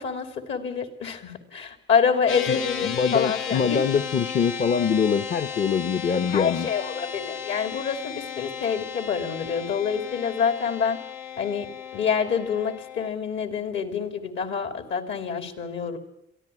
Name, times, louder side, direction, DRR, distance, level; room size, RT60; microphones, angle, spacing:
voice 1, 0.0-3.8 6.3-11.0 11.4-16.0, left 6 dB, 70° left, 8 dB, 3.0 m, -27 dB
sound 1, 2.3-13.1, left 7 dB, 85° left, 1.3 m, -35 dB
voice 2, 2.8-6.7, left 6 dB, 45° left, 11 dB, 0.9 m, -24 dB
23.0 x 14.0 x 10.0 m, 0.83 s
cardioid pair, 90°, 20 cm